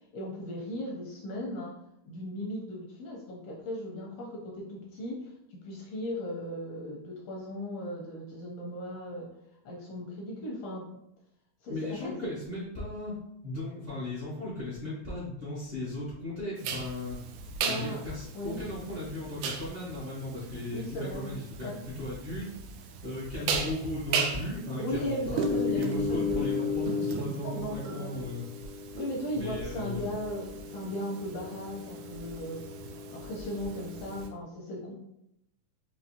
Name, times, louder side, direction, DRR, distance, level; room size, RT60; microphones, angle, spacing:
voice 1, 0.1-1.7 2.0-9.3 9.6-10.9 11.6-12.3 17.6-18.0 18.3-18.6 20.7-21.8 24.8-26.4 27.4-28.1 28.9-32.6 33.1-34.9, equal, 80° left, -2 dB, 1.4 m, -37 dB
voice 2, 11.7-13.1 13.4-17.2 17.6-22.5 23.0-28.4 29.3-30.0, left 1 dB, 50° right, -9 dB, 0.6 m, -36 dB
sound 1, 16.6-34.3, equal, 80° right, 1.9 m, -35 dB
5.5 x 2.8 x 2.8 m, 0.82 s
omnidirectional pair, 3.5 m